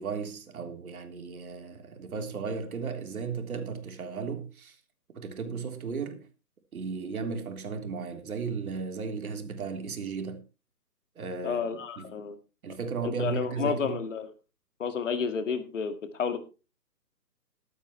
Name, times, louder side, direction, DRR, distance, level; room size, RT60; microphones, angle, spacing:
voice 1, 0.0-4.8 5.1-6.3 6.7-10.4 11.2-11.7 12.0-12.1 12.6-14.0, right 5 dB, 55° right, 3.6 m, -35 dB
voice 2, 11.4-12.4 13.0-14.3 14.8-16.4, left 6 dB, 45° left, 2.0 m, -31 dB
14.0 x 12.5 x 3.2 m
hypercardioid pair, 155°, 50 cm